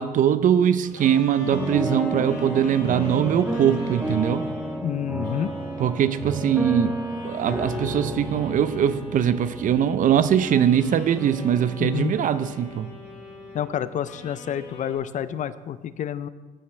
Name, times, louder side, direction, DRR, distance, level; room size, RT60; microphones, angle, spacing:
voice 1, 0.0-4.5 5.8-7.0 7.2-12.9, right 9 dB, 50° right, 13 dB, 0.6 m, -21 dB
sound 1, 0.8-4.8 5.2-10.1 10.3-13.7 14.0-14.9, left 2 dB, 75° left, 3.8 m, -43 dB
sound 2, 1.5-14.5 14.8-14.9, right 1 dB, 5° right, 1.2 m, -32 dB
voice 2, 4.8-5.5 11.8-12.2 13.5-16.3, left 10 dB, 50° left, 15 dB, 0.5 m, -29 dB
15.0 x 9.3 x 3.3 m, 1.3 s
cardioid pair, 110°, 17 cm